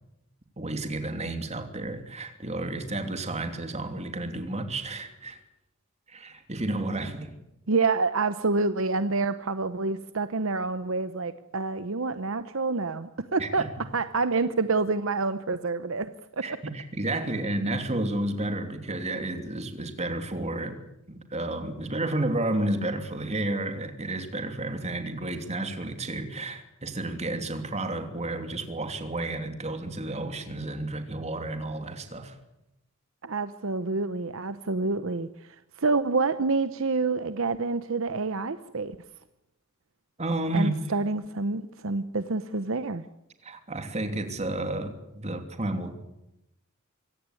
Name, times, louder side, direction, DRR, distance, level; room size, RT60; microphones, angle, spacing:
voice 1, 0.6-5.4 6.1-7.3 13.4-13.7 16.4-20.8 21.1-32.4 40.2-40.7 43.4-46.0, right 2 dB, 30° right, 6 dB, 2.9 m, -31 dB
voice 2, 7.7-16.5 33.2-39.0 40.5-43.0, right 3 dB, 65° right, 12 dB, 0.9 m, -28 dB
24.0 x 17.0 x 9.7 m, 0.90 s
head